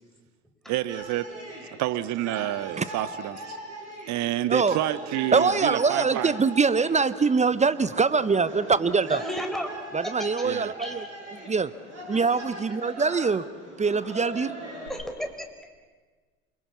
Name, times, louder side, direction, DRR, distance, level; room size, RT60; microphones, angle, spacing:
voice 1, 0.7-1.3 1.8-3.6 4.1-6.3 10.4-10.7, right 14 dB, 55° right, 15 dB, 1.2 m, -29 dB
sound 1, 0.9-14.9, right 1 dB, 90° right, 7.1 m, -41 dB
voice 2, 5.3-9.2 9.9-11.1 11.3-11.7 12.1-13.4 13.8-14.6, right 4 dB, 20° right, 15 dB, 0.9 m, -23 dB
voice 3, 9.1-9.8 10.0-10.5 10.8-11.1 14.9-15.5, equal, ahead, 3 dB, 4.7 m, -33 dB
28.5 x 22.0 x 7.1 m, 1.4 s
figure-of-eight pair, 60°, 35 cm